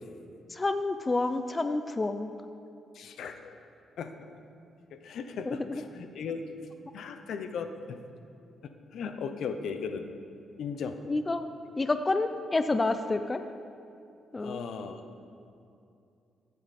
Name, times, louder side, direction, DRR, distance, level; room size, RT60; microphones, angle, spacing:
voice 1, 0.5-2.3 5.5-5.8 11.1-13.4 14.3-14.6, left 2 dB, 25° left, 9 dB, 0.5 m, -29 dB
voice 2, 2.9-3.5 4.0-4.1 4.9-6.4 6.9-8.0 8.6-10.1 10.6-11.0 14.4-15.0, left 6 dB, 75° left, 8 dB, 0.8 m, -37 dB
14.5 x 8.3 x 4.3 m, 2.6 s
cardioid pair, 85°, 0 cm